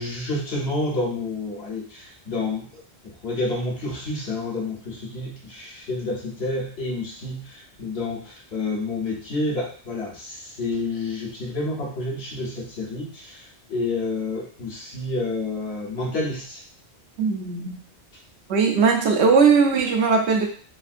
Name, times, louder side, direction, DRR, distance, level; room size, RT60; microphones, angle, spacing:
voice 1, 0.0-16.6, left 2 dB, 75° left, -4 dB, 1.3 m, -29 dB
voice 2, 17.2-17.8 18.5-20.5, right 5 dB, 85° right, 2 dB, 1.0 m, -19 dB
3.4 x 2.5 x 2.5 m, 0.43 s
omnidirectional pair, 1.1 m